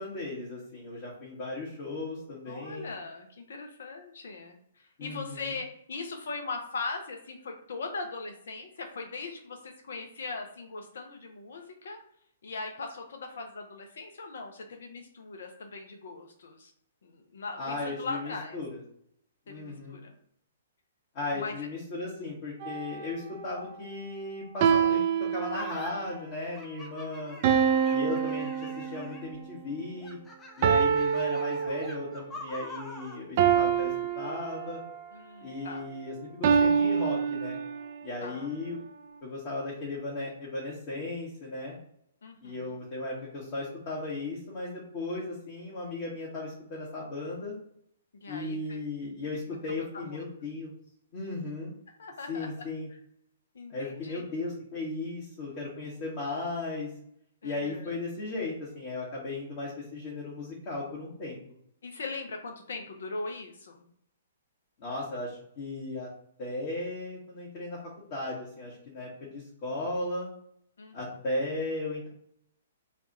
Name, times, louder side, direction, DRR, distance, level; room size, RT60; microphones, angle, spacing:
voice 1, 0.0-3.0 5.0-5.5 17.6-18.8 19.5-20.0 21.1-27.4 27.9-30.2 30.6-34.8 35.4-37.6 38.0-38.8 39.2-41.8 42.4-47.6 48.3-50.7 51.1-51.7 52.3-52.9 53.7-56.9 57.4-61.4 64.8-66.1 66.4-70.3 70.9-72.1, left 2 dB, 40° left, -5 dB, 1.3 m, -36 dB
voice 2, 2.5-12.0 12.4-16.7 17.0-18.6 19.5-20.1 21.3-21.5 35.1-35.9 38.2-38.5 42.2-42.8 48.1-48.8 49.5-49.6 50.0-50.2 52.0-52.5 53.5-54.2 57.4-57.9 61.8-63.9 70.8-71.0, left 3 dB, 65° left, 3 dB, 0.8 m, -40 dB
sound 1, 22.6-23.1 24.6-26.1 27.4-29.3 30.6-32.2 33.4-35.0 36.4-38.0, right 7 dB, 45° right, 0.4 m, -26 dB
sound 2, 25.5-25.9 26.6-29.4 30.0-33.2, left 2 dB, 20° left, 0.6 m, -44 dB
3.3 x 2.5 x 4.1 m, 0.69 s
figure-of-eight pair, 120°, 0 cm